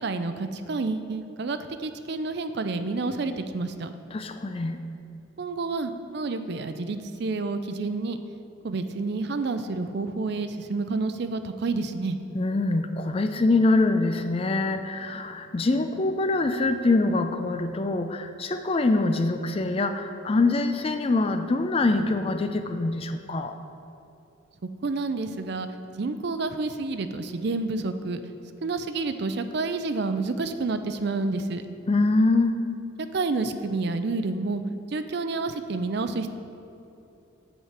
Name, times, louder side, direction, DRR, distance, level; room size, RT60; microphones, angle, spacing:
voice 1, 0.0-3.9 5.4-8.2 8.6-12.2 24.6-25.7 26.0-28.2 28.6-31.6 33.1-34.6 34.9-36.3, right 3 dB, 55° right, 9 dB, 0.4 m, -29 dB
voice 2, 4.1-4.8 12.3-23.5 31.9-32.6, left 2 dB, 25° left, 8 dB, 0.4 m, -24 dB
8.0 x 4.9 x 7.3 m, 2.8 s
head